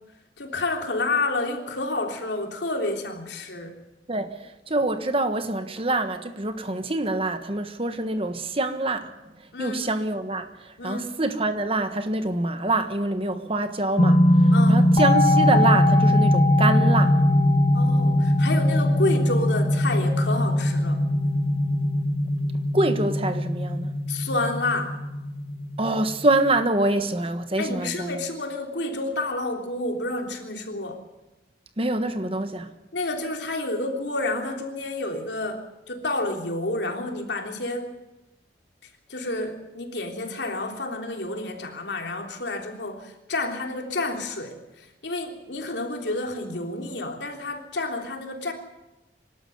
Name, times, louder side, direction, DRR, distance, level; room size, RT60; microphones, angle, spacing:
voice 1, 0.4-3.7 9.5-9.8 10.8-11.1 14.5-14.9 17.7-21.0 24.1-25.0 27.6-31.0 32.9-37.9 39.1-48.5, left 2 dB, 75° left, 3.3 m, -29 dB
voice 2, 4.1-17.2 22.7-23.9 25.8-28.2 31.8-32.7, right 2 dB, 30° right, 1.4 m, -25 dB
sound 1, 14.0-26.6, left 1 dB, 35° left, 1.2 m, -21 dB
24.5 x 12.5 x 9.5 m
head